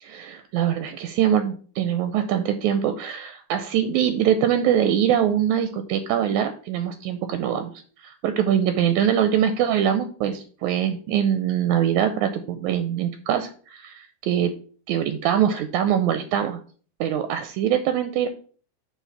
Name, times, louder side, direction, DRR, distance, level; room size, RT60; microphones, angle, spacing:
voice 1, 0.0-7.7 8.0-14.5 14.9-16.6 17.0-18.3, right 9 dB, 80° right, 8 dB, 1.9 m, -23 dB
5.8 x 4.4 x 5.6 m, 0.43 s
omnidirectional pair, 3.5 m